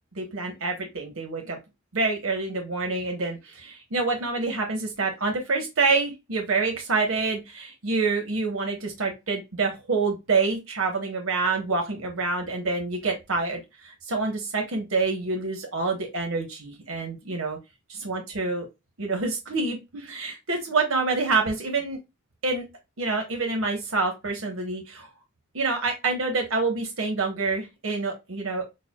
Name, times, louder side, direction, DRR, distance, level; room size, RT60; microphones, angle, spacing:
voice 1, 0.1-1.6 1.9-17.6 17.9-18.6 19.0-22.0 22.4-22.7 23.0-25.1 25.5-28.6, right 3 dB, 85° right, 3 dB, 1.1 m, -27 dB
6.7 x 2.2 x 2.3 m, 0.23 s
head